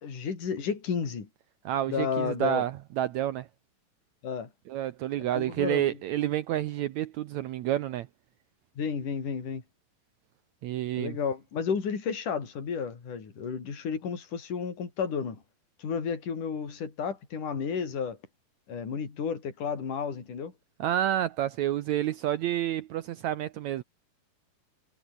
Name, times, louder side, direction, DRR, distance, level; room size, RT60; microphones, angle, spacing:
voice 1, 0.0-1.3 1.9-2.6 4.2-4.5 5.2-6.0 8.8-9.6 11.0-15.4 15.8-18.2 18.7-20.5, left 6 dB, 60° left, 5.8 m, -32 dB
voice 2, 1.6-2.7 3.0-3.5 4.7-8.1 10.6-11.2 20.8-23.8, right 12 dB, 80° right, 1.6 m, -29 dB
omnidirectional pair, 4.2 m